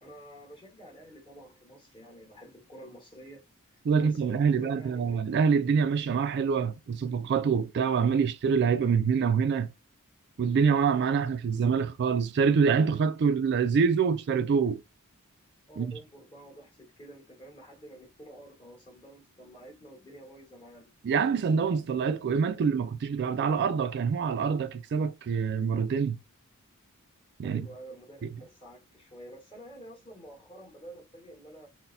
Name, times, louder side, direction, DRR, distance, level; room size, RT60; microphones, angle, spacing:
voice 1, 0.0-3.4 3.7-5.2 15.7-20.9 27.4-31.7, right 1 dB, 25° left, 1.5 m, -49 dB
voice 2, 3.9-9.7 10.4-14.8 15.8-15.9 21.0-26.2 27.4-27.7, right 6 dB, 50° right, 0.3 m, -25 dB
4.0 x 2.1 x 2.6 m
head